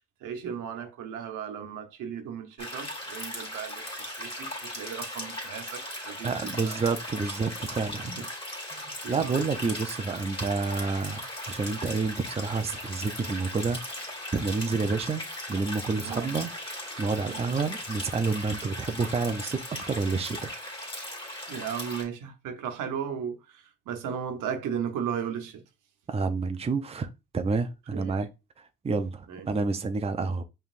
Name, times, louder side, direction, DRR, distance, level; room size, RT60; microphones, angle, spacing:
voice 1, 0.0-6.8 8.0-8.2 9.0-9.4 16.0-16.3 17.3-17.5 21.5-25.6 27.9-28.1 29.3-29.5, right 8 dB, 90° right, 1.0 m, -36 dB
sound 1, 2.6-22.0, left 1 dB, 20° left, 2.1 m, -38 dB
voice 2, 6.2-8.1 8.7-14.1 14.3-15.2 15.5-16.5 17.0-20.5 26.1-28.3 28.6-30.4, right 4 dB, 20° right, 0.5 m, -29 dB
5.4 x 3.3 x 2.5 m
cardioid pair, 90°, 30 cm